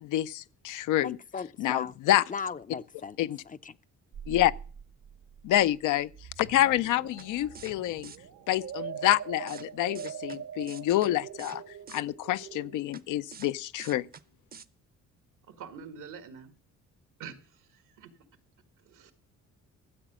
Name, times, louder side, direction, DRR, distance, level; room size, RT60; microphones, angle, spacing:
voice 1, 0.0-1.2 1.6-2.2 3.2-3.4 4.3-4.5 5.4-6.1 6.4-8.1 8.5-11.6 11.9-14.1, left 14 dB, 85° left, 0.6 m, -27 dB
voice 2, 1.0-1.9 2.3-3.2 3.4-3.8, left 5 dB, 25° left, 0.5 m, -37 dB
sound 1, 4.1-12.8, right 8 dB, 65° right, 1.1 m, -43 dB
sound 2, 7.2-7.3 7.5-7.7 8.0-8.2 9.1-9.2 9.5-9.7 9.9-10.4 10.7-11.1 11.4-11.6 11.9-12.0 12.9-13.0 13.3-13.5 13.8-14.2 14.5-14.6, right 6 dB, 30° right, 0.6 m, -46 dB
voice 3, 15.5-16.5 17.2-18.1 18.8-19.1, right 6 dB, 85° right, 1.8 m, -46 dB
13.0 x 8.0 x 6.1 m
cardioid pair, 90°, 30 cm